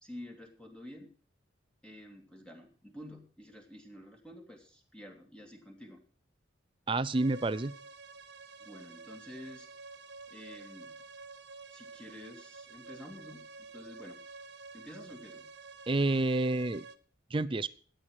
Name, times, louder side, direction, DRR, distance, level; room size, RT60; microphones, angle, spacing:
voice 1, 0.0-1.1 1.8-6.0 8.6-9.7 10.3-11.0 11.7-14.2 14.7-15.5, left 1 dB, 5° left, 2 dB, 2.3 m, -49 dB
voice 2, 6.9-7.7 15.9-16.8 17.3-17.7, right 2 dB, 25° right, 16 dB, 0.5 m, -29 dB
sound 1, 7.1-17.0, right 4 dB, 60° right, 0.9 m, -50 dB
13.0 x 9.1 x 6.5 m, 0.43 s
head